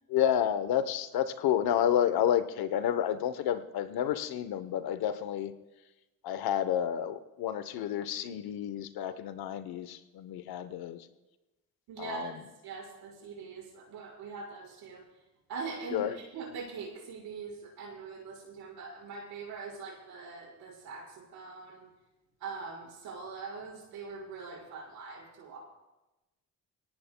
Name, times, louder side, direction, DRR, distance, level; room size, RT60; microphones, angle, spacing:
voice 1, 0.1-5.5 6.2-11.1 12.0-12.4 15.9-16.2, left 10 dB, 85° left, 12 dB, 0.9 m, -30 dB
voice 2, 11.9-12.3 12.6-15.0 15.5-21.8 22.4-25.6, right 5 dB, 85° right, -4 dB, 5.0 m, -42 dB
22.0 x 18.0 x 2.2 m, 1.0 s
cardioid pair, 70°, 36 cm